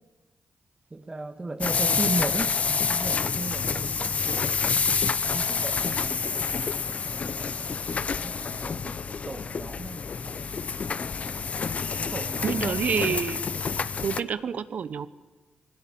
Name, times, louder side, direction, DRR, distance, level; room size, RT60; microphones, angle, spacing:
voice 1, 0.9-4.7 5.3-10.6 11.9-12.8, right 2 dB, 30° right, 7 dB, 1.6 m, -36 dB
sound 1, 1.6-14.2, left 5 dB, 50° left, 0.8 m, -28 dB
sound 2, 4.1-6.1 6.5-7.6, left 2 dB, 30° left, 1.9 m, -49 dB
voice 2, 12.4-13.4 14.0-15.1, right 7 dB, 65° right, 14 dB, 1.1 m, -28 dB
21.0 x 17.0 x 8.8 m, 1.2 s
supercardioid pair, 50°, 3 cm